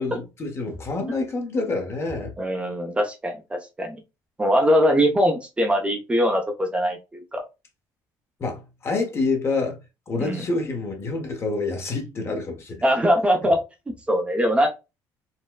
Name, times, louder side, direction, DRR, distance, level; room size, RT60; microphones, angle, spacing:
voice 1, 0.0-2.3 8.4-9.8 10.1-12.8, left 3 dB, 35° left, 1.0 m, -27 dB
voice 2, 2.4-4.0 4.4-7.4 10.2-10.4 12.8-13.6 14.1-14.7, equal, 15° right, 0.7 m, -22 dB
4.2 x 2.2 x 2.3 m
cardioid pair, 105°, 7 cm